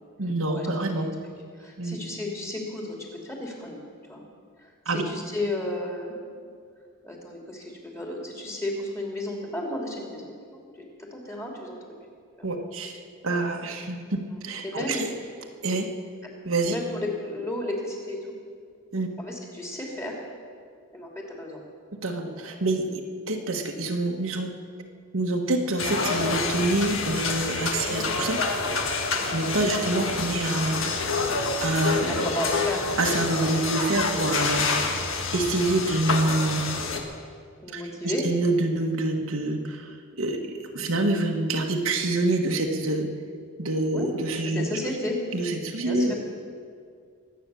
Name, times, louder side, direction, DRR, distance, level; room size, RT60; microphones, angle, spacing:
voice 1, 0.2-1.1 1.8-2.0 4.8-5.0 12.4-12.9 13.2-14.0 14.4-15.1 15.6-15.9 16.4-16.7 18.9-19.1 22.0-23.0 23.3-24.5 25.1-28.4 29.3-30.9 31.6-32.3 33.0-34.7 35.3-36.6 37.7-39.9 40.2-43.1 43.6-44.6 45.3-46.1, right 2 dB, 70° right, 2 dB, 1.4 m, -26 dB
voice 2, 1.5-3.0 3.2-3.8 4.1-4.2 4.6-6.5 7.0-10.3 11.1-11.8 12.4-12.5 14.3-15.1 16.6-18.3 19.2-20.2 20.9-21.6 27.8-28.1 29.2-29.4 32.1-32.8 37.6-38.3 43.9-44.1 44.4-45.2 45.8-46.1, left 1 dB, 15° left, -1 dB, 2.7 m, -33 dB
sound 1, 25.8-37.0, left 4 dB, 65° left, 1.7 m, -28 dB
23.0 x 9.0 x 6.9 m, 2.1 s
head